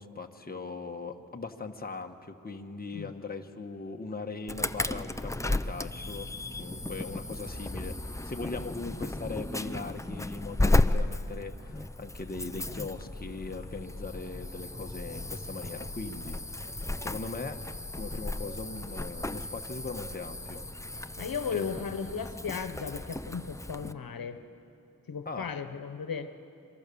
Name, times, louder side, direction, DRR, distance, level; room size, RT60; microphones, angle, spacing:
voice 1, 0.0-6.3 6.5-16.7 17.0-17.6 17.9-20.7 21.5-21.9 25.2-25.5, left 3 dB, 25° left, 4 dB, 1.4 m, -40 dB
Insect / Alarm, 4.5-23.9, left 2 dB, 10° left, 0.6 m, -34 dB
voice 2, 21.2-24.4 25.1-26.3, left 6 dB, 85° left, 9 dB, 1.2 m, -36 dB
26.5 x 24.0 x 7.0 m, 2.8 s
wide cardioid pair, 85°, 34 cm